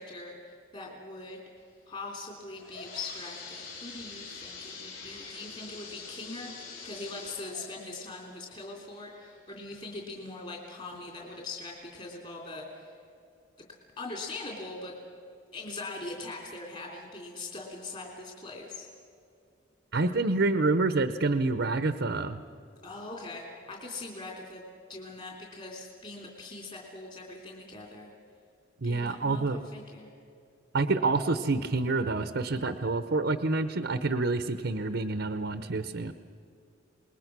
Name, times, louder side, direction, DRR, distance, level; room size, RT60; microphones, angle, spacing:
voice 1, 0.0-1.4 1.9-13.0 14.0-14.9 15.5-18.9 22.8-24.6 24.9-28.1 28.8-30.1, left 2 dB, 35° left, -1 dB, 3.2 m, -41 dB
sound 1, 2.3-9.9 10.4-10.5 11.2-11.3 11.7-11.8, left 4 dB, 65° left, 6.1 m, -45 dB
voice 2, 19.9-22.4 28.8-29.6 30.7-36.1, right 3 dB, 60° right, 10 dB, 0.8 m, -27 dB
28.0 x 20.5 x 6.1 m, 2.5 s
head